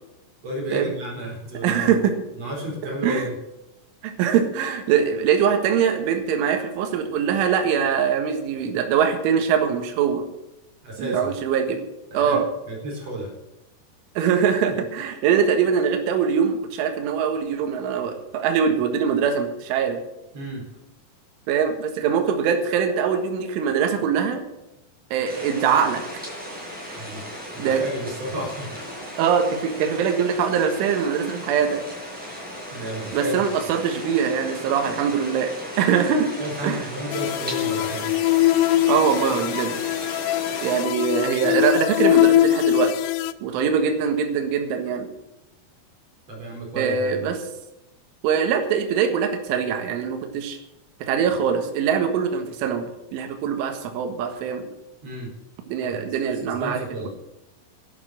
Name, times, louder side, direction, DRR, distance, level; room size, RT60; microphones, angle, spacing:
voice 1, 0.4-1.9 2.4-3.3 10.8-11.3 12.1-12.4 12.7-13.3 20.3-20.6 27.0-27.2 27.5-28.9 32.7-33.4 36.4-38.1 46.3-47.3 55.0-55.3 55.8-56.1 56.4-57.1, equal, 35° right, -1 dB, 5.0 m, -32 dB
voice 2, 1.6-2.2 3.0-3.2 4.0-10.2 11.0-11.8 12.1-12.5 14.2-20.0 21.5-24.4 25.1-26.0 26.9-27.0 27.6-27.8 29.2-31.8 33.1-36.3 36.6-36.8 38.9-39.8 40.6-42.9 43.4-45.1 46.8-47.4 48.2-50.6 51.0-54.7 55.7-57.1, right 7 dB, 75° right, 5 dB, 4.0 m, -22 dB
sound 1, 25.2-40.8, equal, ahead, 4.8 m, -36 dB
sound 2, 37.1-43.3, left 15 dB, 85° left, 3.2 m, -22 dB
11.5 x 11.0 x 7.6 m, 0.92 s
omnidirectional pair, 5.8 m